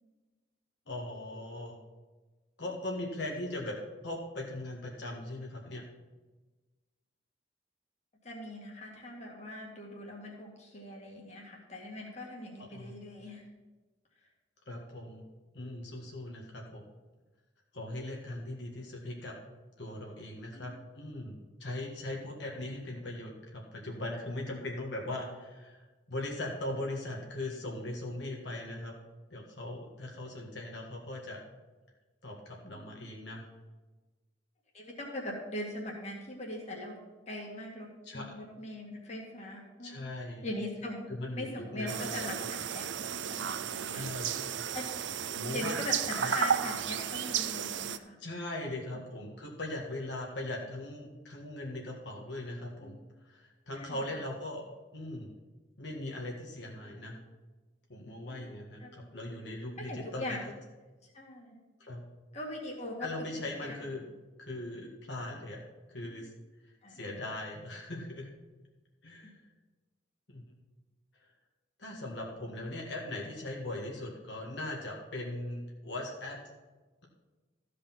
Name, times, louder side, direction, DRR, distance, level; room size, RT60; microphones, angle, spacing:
voice 1, 0.9-1.8 2.6-3.8 4.0-5.8 12.6-12.9 14.7-15.3 15.5-16.8 17.7-19.4 19.8-25.8 26.1-28.9 29.3-31.4 32.2-33.5 38.0-38.2 39.8-40.5 41.1-42.3 43.9-44.4 45.3-45.7 46.2-46.4 48.2-53.0 53.3-54.6 54.9-55.3 55.8-57.2 57.9-60.3 61.8-62.0 63.0-64.1 64.4-65.6 65.9-66.3 66.9-68.3 69.0-69.4 70.3-70.4 71.8-76.4, left 1 dB, 70° left, -1 dB, 1.7 m, -39 dB
voice 2, 8.2-13.4 34.7-37.0 37.3-40.0 40.4-42.9 43.3-44.1 44.7-44.9 45.5-48.2 53.7-54.2 58.3-58.4 58.8-58.9 59.8-60.4 61.0-61.6 62.3-63.3 63.6-63.8 66.8-67.1, left 1 dB, 35° left, -2 dB, 2.0 m, -41 dB
sound 1, 41.9-48.0, right 8 dB, 75° right, 0.5 m, -33 dB
14.0 x 5.1 x 5.8 m, 1.2 s
head